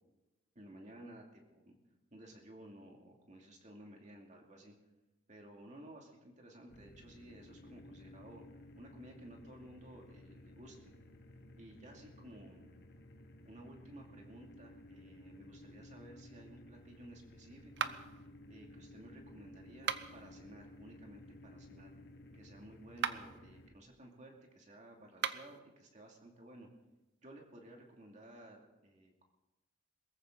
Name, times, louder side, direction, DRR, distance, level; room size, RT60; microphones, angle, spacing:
voice 1, 0.5-1.8 2.1-4.7 5.3-8.4 8.7-10.9 11.5-12.7 13.4-17.9 18.5-21.9 22.3-26.7 27.2-29.2, right 1 dB, 35° right, 1 dB, 2.5 m, -55 dB
sound 1, 6.7-23.7, left 1 dB, 50° left, 1.2 m, -56 dB
sound 2, 17.8-18.3 19.7-20.3 22.9-23.4 25.1-25.6, right 7 dB, 55° right, 0.7 m, -38 dB
22.0 x 14.5 x 3.9 m, 1.0 s
head